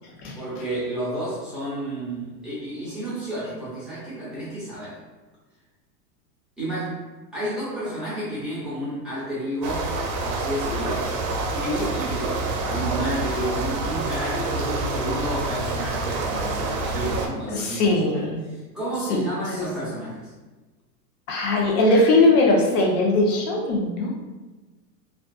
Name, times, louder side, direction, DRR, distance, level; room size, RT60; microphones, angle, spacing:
voice 1, 0.3-5.0 6.6-7.0 7.3-9.9 10.2-11.2 11.5-20.3, right 1 dB, ahead, -11 dB, 0.6 m, -31 dB
sound 1, 9.6-17.3, right 2 dB, 60° right, 0.6 m, -27 dB
voice 2, 17.5-18.4 19.1-19.2 19.6-19.7 21.3-24.1, left 2 dB, 65° left, -1 dB, 0.7 m, -20 dB
2.4 x 2.4 x 2.2 m, 1.2 s
supercardioid pair, 130°, 49 cm